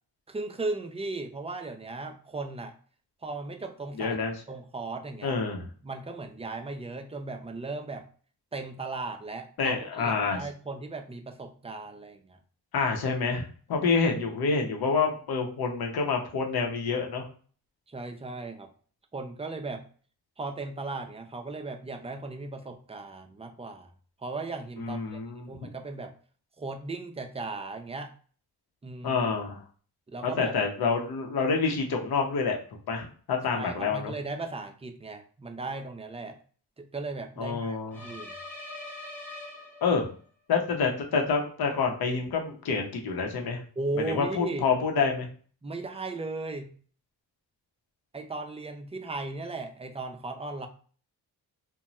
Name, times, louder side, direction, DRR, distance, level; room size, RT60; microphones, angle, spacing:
voice 1, 0.3-2.7 3.2-4.2 4.5-5.4 5.8-8.1 8.5-12.4 17.9-18.7 19.1-19.8 20.4-23.9 24.2-26.1 26.6-28.1 28.8-29.2 30.1-30.6 33.6-36.4 36.8-38.4 43.8-44.7 45.6-46.7 48.1-50.7, right 3 dB, 15° right, 5 dB, 0.5 m, -37 dB
voice 2, 3.9-4.3 5.2-5.7 9.6-10.4 12.7-17.2 24.8-25.5 29.0-29.6 30.2-32.6 32.9-34.1 37.4-38.1 39.8-40.0 40.5-43.6 44.0-45.3, left 5 dB, 65° left, 1 dB, 0.8 m, -27 dB
sound 1, 37.9-40.3, left 2 dB, 5° left, 1.0 m, -42 dB
2.6 x 2.2 x 3.0 m, 0.43 s
cardioid pair, 60°, 40 cm